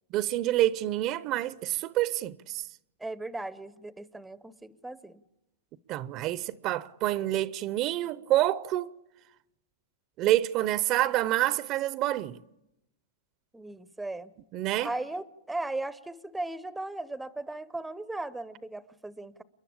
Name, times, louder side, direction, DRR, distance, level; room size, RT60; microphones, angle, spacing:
voice 1, 0.1-2.6 5.9-8.9 10.2-12.4 14.5-14.9, right 15 dB, 40° right, 0.6 m, -27 dB
voice 2, 3.0-5.2 13.5-14.3 14.8-19.4, right 2 dB, 5° right, 0.7 m, -37 dB
29.0 x 11.0 x 8.7 m
hypercardioid pair, 125°, 0 cm